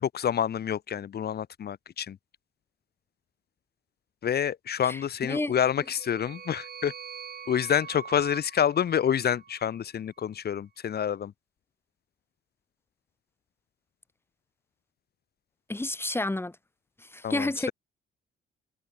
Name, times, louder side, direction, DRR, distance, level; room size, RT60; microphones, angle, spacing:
voice 1, 0.0-2.2 4.2-6.9 7.5-11.3 17.2-17.7, left 9 dB, 55° left, 1.4 m, -28 dB
voice 2, 4.8-5.5 15.7-16.6 17.0-17.7, left 2 dB, 10° left, 2.1 m, -30 dB
sound 1, 5.4-9.8, right 7 dB, 50° right, 5.3 m, -44 dB
cardioid pair, 90°, 20 cm